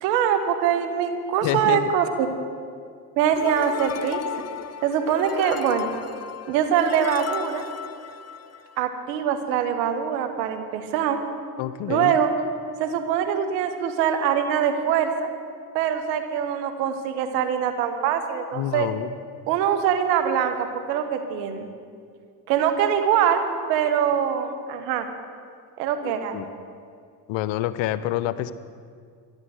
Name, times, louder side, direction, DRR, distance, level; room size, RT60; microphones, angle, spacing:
voice 1, 0.0-2.3 3.2-4.2 4.8-5.9 6.5-7.6 8.8-11.2 11.9-12.3 12.8-15.3 15.7-18.9 19.5-21.7 22.5-23.4 23.7-25.1 25.8-26.4, right 8 dB, 85° right, 8 dB, 1.6 m, -23 dB
voice 2, 1.4-1.9 11.6-12.2 18.5-19.1 26.0-26.5 27.3-28.5, left 13 dB, 70° left, 14 dB, 0.9 m, -27 dB
sound 1, 3.3-8.8, left 8 dB, 30° left, 0.8 m, -34 dB
13.5 x 10.5 x 8.0 m, 2.2 s
hypercardioid pair, 60°, 48 cm